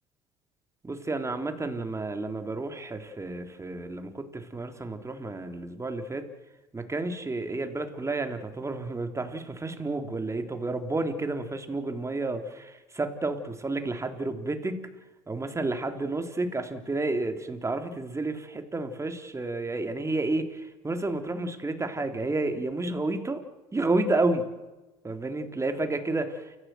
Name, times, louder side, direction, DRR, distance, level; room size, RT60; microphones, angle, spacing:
voice 1, 0.8-6.3 6.7-14.9 15.3-23.4 23.7-24.5 25.0-26.6, right 2 dB, 20° right, 6 dB, 3.4 m, -31 dB
29.0 x 15.0 x 7.7 m, 1.1 s
hypercardioid pair, 70°, 15 cm